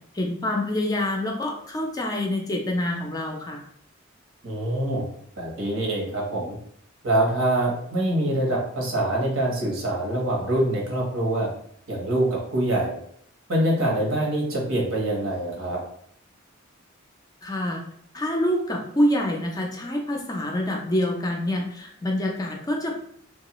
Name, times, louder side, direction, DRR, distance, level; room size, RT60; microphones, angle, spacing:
voice 1, 0.1-3.6 17.4-17.8 18.1-22.9, left 1 dB, 20° left, 1 dB, 0.4 m, -26 dB
voice 2, 4.4-5.1 5.4-6.6 7.0-11.5 11.9-12.9 13.5-15.8, right 1 dB, 75° right, -1 dB, 1.0 m, -24 dB
3.0 x 2.3 x 3.0 m, 0.66 s
head